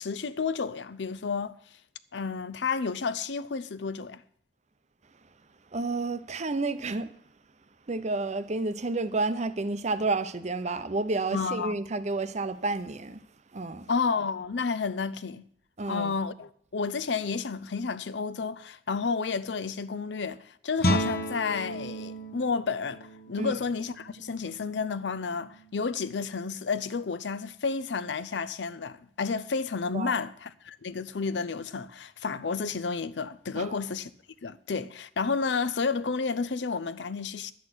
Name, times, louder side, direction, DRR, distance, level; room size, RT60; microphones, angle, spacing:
voice 1, 0.0-1.6 2.1-4.2 11.3-11.7 13.9-15.4 15.9-34.1 34.4-37.5, left 5 dB, 70° left, 0.6 m, -31 dB
voice 2, 5.7-7.1 7.9-13.2 13.5-13.9 15.8-16.1 23.4-23.5 29.9-30.2 33.6-33.7, right 3 dB, 40° right, 0.7 m, -30 dB
Guitar, 20.8-26.3, equal, 55° left, 1.2 m, -34 dB
11.0 x 8.5 x 6.2 m
head